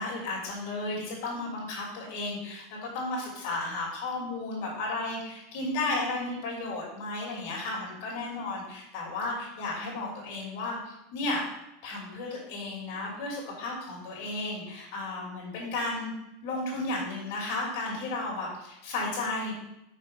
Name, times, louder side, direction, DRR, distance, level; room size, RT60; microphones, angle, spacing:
voice 1, 0.0-11.4 11.8-16.1 16.4-19.5, left 2 dB, 65° left, -3 dB, 3.0 m, -33 dB
6.0 x 5.2 x 5.5 m, 0.88 s
supercardioid pair, 135°, 0 cm